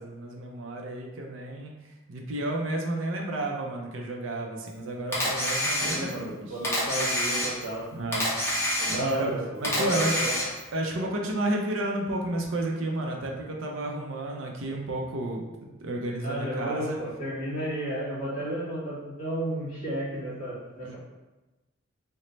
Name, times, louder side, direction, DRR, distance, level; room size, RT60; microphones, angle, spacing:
voice 1, 0.0-1.7 2.1-6.5 7.9-8.4 8.9-9.3 9.6-10.3 10.7-17.0 20.8-20.9, right 1 dB, 65° right, 1 dB, 0.5 m, -31 dB
Camera, 5.1-6.3 6.6-7.8 8.1-9.3 9.6-10.7, equal, 10° left, 0.8 m, -27 dB
voice 2, 5.8-7.9 8.8-10.3 16.2-21.0, right 1 dB, 40° left, -7 dB, 1.4 m, -33 dB
3.1 x 2.1 x 3.9 m, 1.1 s
head